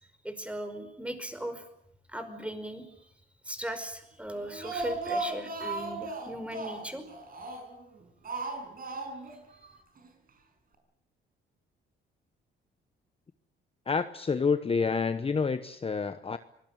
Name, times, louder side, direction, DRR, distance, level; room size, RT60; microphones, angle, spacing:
voice 1, 0.2-1.6 2.1-3.1 3.4-7.0, right 1 dB, 5° right, 9 dB, 5.2 m, -38 dB
Speech, 4.3-7.8 8.2-9.4 9.6-9.7 10.0-10.1, right 2 dB, 45° right, 5.7 m, -36 dB
voice 2, 13.9-16.4, left 5 dB, 30° left, 10 dB, 1.1 m, -28 dB
24.5 x 19.0 x 9.0 m, 0.74 s
cardioid pair, 90°, 20 cm